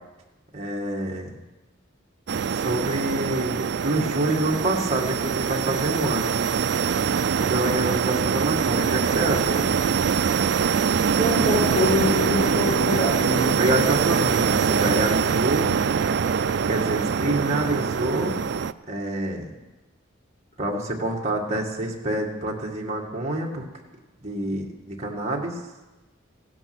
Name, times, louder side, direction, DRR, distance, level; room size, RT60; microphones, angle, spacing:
voice 1, 0.5-1.4 2.5-6.4 7.4-9.8 13.5-15.7 16.6-18.3 18.9-19.5 20.6-23.6 24.2-25.6, right 1 dB, 30° right, -1 dB, 2.0 m, -27 dB
sound 1, 2.3-18.7, right 6 dB, 55° right, 0.4 m, -23 dB
voice 2, 11.2-13.6, left 2 dB, 30° left, -10 dB, 4.9 m, -25 dB
16.5 x 9.8 x 6.2 m, 1.1 s
head